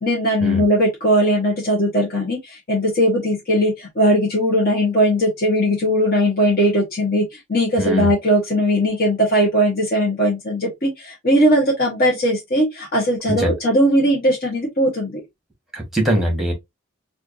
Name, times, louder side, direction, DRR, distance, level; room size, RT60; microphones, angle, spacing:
voice 1, 0.0-15.2, equal, 50° left, 1.1 m, -19 dB
voice 2, 7.8-8.1 13.3-13.5 15.7-16.5, right 1 dB, ahead, 1.2 m, -21 dB
4.3 x 2.5 x 2.5 m
head